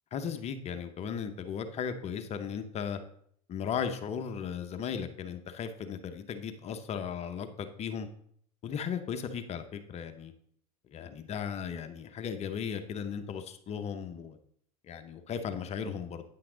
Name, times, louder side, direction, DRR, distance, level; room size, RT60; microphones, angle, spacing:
voice 1, 0.1-3.0 3.5-8.1 8.6-10.3 10.9-14.4 14.8-16.2, left 7 dB, 35° left, 8 dB, 0.8 m, -36 dB
9.4 x 5.8 x 3.8 m, 0.64 s
hypercardioid pair, 105°, 19 cm